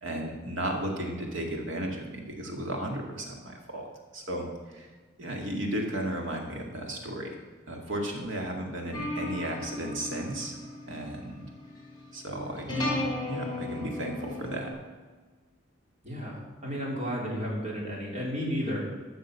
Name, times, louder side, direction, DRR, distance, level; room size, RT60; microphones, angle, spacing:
voice 1, 0.0-3.9 4.1-4.9 5.2-7.3 7.7-10.6 10.9-11.5 12.1-14.7, right 1 dB, 65° right, 1 dB, 2.2 m, -34 dB
sound 1, 8.9-14.7, left 2 dB, 20° left, 3.4 m, -35 dB
voice 2, 16.0-18.8, equal, 35° right, -3 dB, 3.5 m, -32 dB
13.0 x 6.6 x 6.9 m, 1.4 s
head